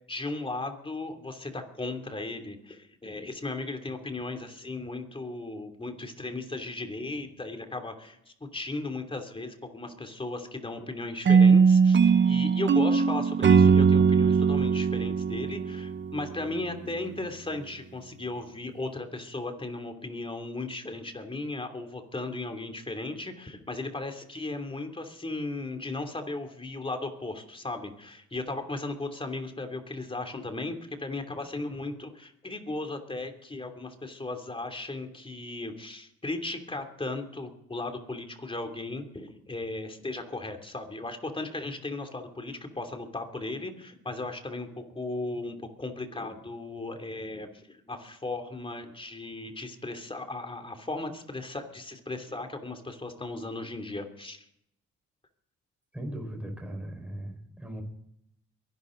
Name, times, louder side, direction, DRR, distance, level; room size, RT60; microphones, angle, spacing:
voice 1, 0.1-54.5, left 2 dB, 15° left, 6 dB, 3.0 m, -36 dB
sound 1, 11.3-16.4, right 5 dB, 40° right, 0.9 m, -20 dB
voice 2, 55.9-57.8, right 1 dB, 5° right, 2 dB, 5.1 m, -38 dB
23.0 x 12.0 x 3.9 m, 0.73 s
cardioid pair, 90°, 30 cm